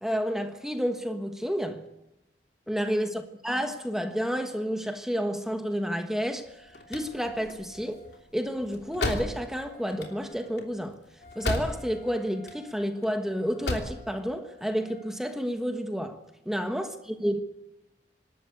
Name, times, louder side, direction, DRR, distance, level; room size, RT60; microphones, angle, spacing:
voice 1, 0.0-1.9 2.7-8.0 8.3-11.0 11.3-16.2 16.4-17.4, equal, 5° right, 1.3 m, -30 dB
Wind instrument woodwind instrument, 5.1-15.1, left 2 dB, 35° left, 7.0 m, -54 dB
sound 1, 6.5-12.1 12.3-13.1 13.4-14.0, left 2 dB, 65° left, 3.1 m, -34 dB
25.5 x 12.5 x 8.5 m
head